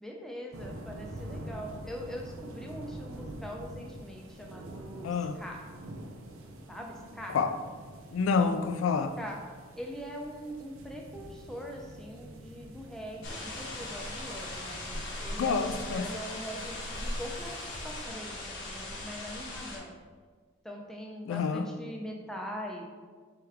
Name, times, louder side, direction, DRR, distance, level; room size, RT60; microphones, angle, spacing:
voice 1, 0.0-5.1 5.4-5.6 6.7-7.4 9.2-9.4 9.8-14.9 15.2-17.6 17.8-18.4 18.7-19.9 20.7-22.8, equal, ahead, 0 dB, 0.4 m, -42 dB
sound 1, 0.5-18.1, right 1 dB, 90° right, 0.6 m, -47 dB
voice 2, 5.0-5.4 7.3-7.6 8.1-9.2 15.4-16.1 21.3-21.7, left 5 dB, 80° left, 9 dB, 0.3 m, -28 dB
sound 2, 13.2-19.8, left 1 dB, 60° left, 0.8 m, -39 dB
4.3 x 3.5 x 3.4 m, 1.5 s
head